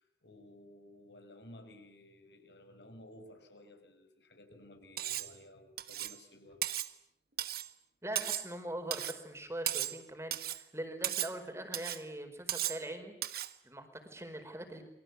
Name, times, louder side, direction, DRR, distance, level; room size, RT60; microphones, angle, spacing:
voice 1, 0.0-6.7, left 1 dB, 70° left, 7 dB, 5.8 m, -55 dB
Cutlery silverware, 5.0-5.3 5.8-6.2 6.6-6.9 7.4-7.7 8.2-8.5 8.9-9.2 9.7-10.0 10.3-10.6 11.0-11.3 11.7-12.0 12.5-12.8 13.2-13.5, right 13 dB, 55° right, 1.4 m, -36 dB
voice 2, 8.0-14.8, right 1 dB, 15° right, 6 dB, 4.6 m, -42 dB
29.5 x 24.0 x 8.3 m, 0.79 s
head